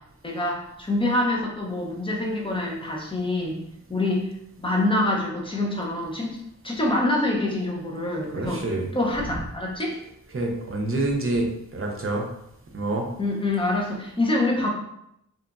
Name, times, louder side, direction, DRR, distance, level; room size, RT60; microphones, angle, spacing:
voice 1, 0.2-3.6 3.9-4.3 4.6-8.6 8.9-10.0 13.2-14.7, left 2 dB, 15° left, -2 dB, 0.6 m, -26 dB
voice 2, 8.3-8.9 10.3-12.3 12.7-13.1, right 2 dB, 45° right, 1 dB, 0.6 m, -27 dB
2.9 x 2.4 x 2.2 m, 0.78 s
wide cardioid pair, 80°, 31 cm